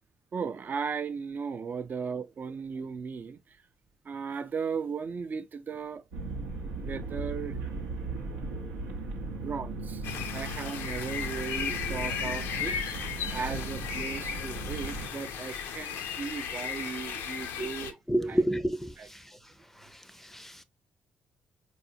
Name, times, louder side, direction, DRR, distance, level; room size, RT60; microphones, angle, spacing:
voice 1, 0.3-3.6 4.0-6.0 6.6-7.6 9.3-18.4 19.0-19.1, right 5 dB, 50° right, 0.5 m, -37 dB
sound 1, 6.1-15.1, right 2 dB, 90° right, 0.7 m, -37 dB
sound 2, 10.0-17.9, left 7 dB, 80° left, 0.5 m, -36 dB
voice 2, 18.1-19.4 19.8-20.6, right 1 dB, 5° left, 0.5 m, -31 dB
4.1 x 2.4 x 2.7 m
hypercardioid pair, 50°, 4 cm